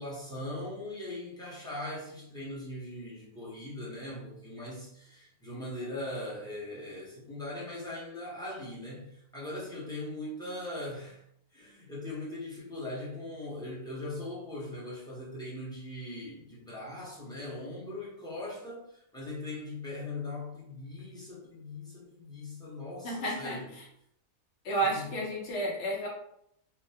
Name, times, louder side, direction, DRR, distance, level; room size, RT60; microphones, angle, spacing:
voice 1, 0.0-11.2 11.5-23.7 24.8-25.1, left 1 dB, 5° left, -7 dB, 0.8 m, -40 dB
voice 2, 23.0-23.6 24.6-26.1, right 2 dB, 60° left, -2 dB, 1.2 m, -31 dB
3.7 x 2.1 x 2.8 m, 0.72 s
omnidirectional pair, 1.5 m